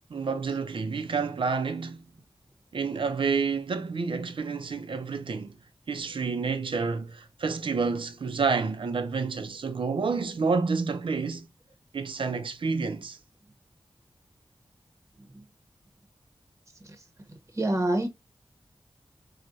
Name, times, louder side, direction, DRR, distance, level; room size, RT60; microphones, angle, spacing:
voice 1, 0.1-2.0 2.7-5.5 5.9-11.5 11.9-13.2, right 4 dB, 85° right, 0.5 m, -29 dB
voice 2, 17.5-18.1, right 1 dB, 35° right, 0.8 m, -26 dB
4.6 x 2.2 x 2.5 m
wide cardioid pair, 75°, 9 cm